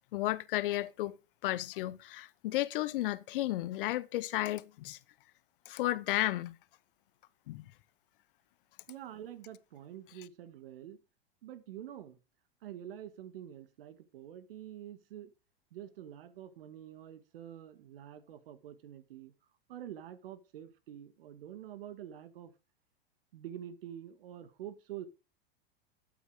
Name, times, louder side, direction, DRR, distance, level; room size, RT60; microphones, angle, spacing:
voice 1, 0.1-1.2 1.4-5.0 5.7-6.6 7.5-7.7, left 16 dB, 60° left, 0.9 m, -33 dB
voice 2, 8.9-11.0 11.4-12.2 12.6-15.3 15.7-19.3 19.7-22.5 23.3-25.1, right 11 dB, 70° right, 1.9 m, -47 dB
12.0 x 8.1 x 5.0 m
hypercardioid pair, 105°, 30 cm